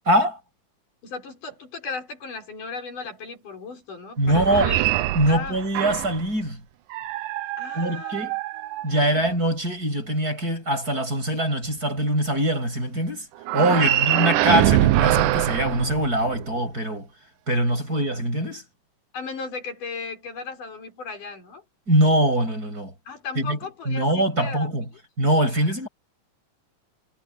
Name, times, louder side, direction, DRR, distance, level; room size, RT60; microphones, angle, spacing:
voice 1, 0.1-0.4 4.2-4.7 5.1-6.6 7.7-8.4 8.8-13.3 13.5-17.1 17.5-18.6 21.9-22.9 23.4-23.6 23.9-24.9 25.2-25.9, right 1 dB, 25° right, 8.4 m, -23 dB
voice 2, 1.0-4.8 5.3-5.6 7.6-8.3 8.5-9.4 13.7-14.1 17.9-18.1 19.1-21.6 23.1-24.9 25.5-25.7, left 4 dB, 75° left, 7.2 m, -36 dB
sound 1, 4.2-6.3 6.9-9.3 13.4-16.6, right 14 dB, 85° right, 2.4 m, -24 dB
omnidirectional pair, 3.6 m